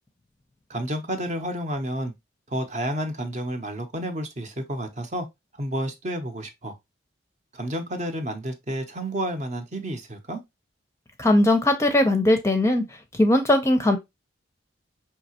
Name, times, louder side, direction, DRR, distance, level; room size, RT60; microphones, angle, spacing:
voice 1, 0.7-2.1 2.5-5.3 5.6-6.7 7.5-10.4, right 1 dB, 35° right, 0.8 m, -30 dB
voice 2, 11.2-12.8 13.2-14.0, left 1 dB, 15° left, 0.6 m, -19 dB
5.1 x 2.8 x 2.9 m
head